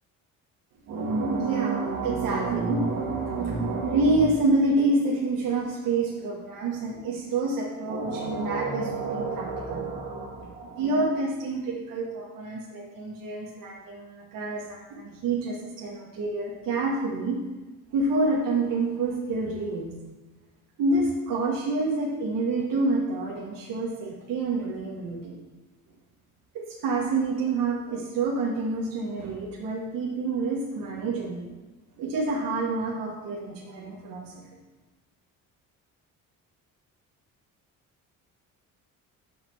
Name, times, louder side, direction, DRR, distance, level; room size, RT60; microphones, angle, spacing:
voice 1, 0.9-17.4 17.9-19.9 20.8-25.4 26.5-31.5 32.0-34.4, right 3 dB, 80° right, -2 dB, 1.4 m, -27 dB
5.9 x 5.0 x 6.1 m, 1.2 s
cardioid pair, 140°, 33 cm